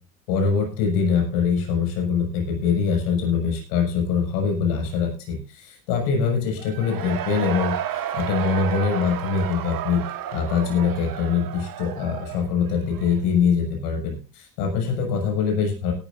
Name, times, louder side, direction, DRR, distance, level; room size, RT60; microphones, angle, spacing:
voice 1, 0.3-7.7 8.1-10.0 10.3-15.9, left 6 dB, 80° left, 2 dB, 6.5 m, -23 dB
Cheering / Crowd, 6.6-13.3, right 10 dB, 45° right, 1.6 m, -32 dB
17.5 x 13.0 x 2.6 m, 0.33 s
supercardioid pair, 85°, 46 cm